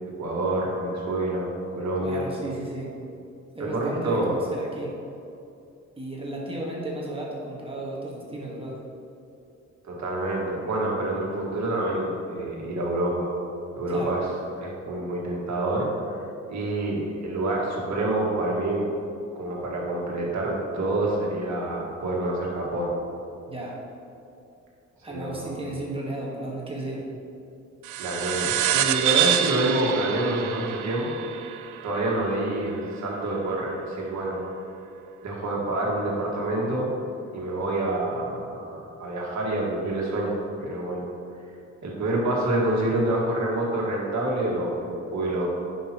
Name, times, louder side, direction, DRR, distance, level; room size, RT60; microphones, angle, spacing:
voice 1, 0.2-2.2 3.7-4.4 9.8-13.3 13.7-14.3 14.6-18.9 19.4-23.0 25.1-25.6 28.0-31.2 31.8-34.4 35.2-36.9 37.3-41.1 41.8-45.5, right 1 dB, 65° right, -3 dB, 1.7 m, -27 dB
voice 2, 2.0-2.9 3.5-4.9 6.0-8.8 13.9-14.2 23.5-23.8 25.0-27.1, right 1 dB, 20° right, -3 dB, 1.4 m, -34 dB
sound 1, 27.8-32.8, right 11 dB, 80° right, 0.5 m, -27 dB
10.0 x 5.5 x 2.9 m, 2.7 s
cardioid pair, 125°, 30 cm